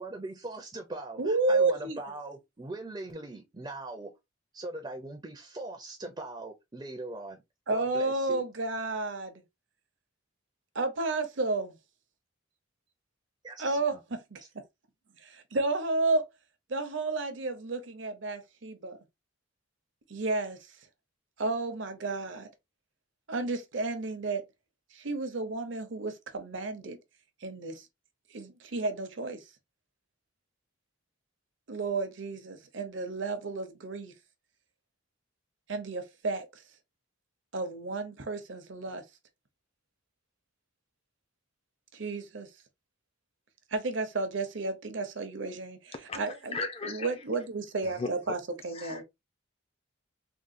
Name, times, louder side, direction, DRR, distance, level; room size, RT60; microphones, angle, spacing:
voice 1, 0.0-4.1 4.5-7.4 7.7-8.4 13.4-14.0 14.4-14.5, right 2 dB, 20° right, 0.5 m, -41 dB
voice 2, 1.2-2.0 7.7-9.4 10.7-11.8 13.6-14.4 15.2-16.2 16.7-19.0 20.1-20.7 21.4-22.5 23.3-24.5 24.9-27.0 27.4-27.9 28.3-29.4 31.7-34.1 35.7-36.5 37.5-39.0 41.9-42.5 43.7-49.0, right 3 dB, 65° right, 0.7 m, -32 dB
voice 3, 46.5-47.1 47.8-48.1 48.8-49.0, left 3 dB, 30° left, 0.5 m, -35 dB
3.6 x 2.3 x 2.5 m
head